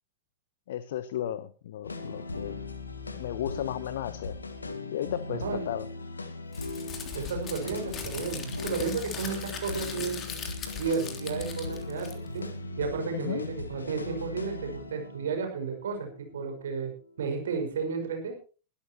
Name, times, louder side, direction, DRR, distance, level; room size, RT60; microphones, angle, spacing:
voice 1, 0.7-2.6 3.2-4.3 4.9-5.9 13.1-13.5, left 11 dB, 60° left, 16 dB, 0.8 m, -34 dB
sound 1, 1.8-17.1, left 3 dB, 75° left, 1.8 m, -39 dB
voice 2, 5.0-5.6 7.1-10.2 10.7-12.5 12.8-16.9 17.2-18.4, right 5 dB, 65° right, 4 dB, 5.4 m, -33 dB
Crumpling crinkling, 6.5-12.5, left 6 dB, 30° left, 3.5 m, -40 dB
22.5 x 13.0 x 3.0 m, 0.36 s
figure-of-eight pair, 90°, 0 cm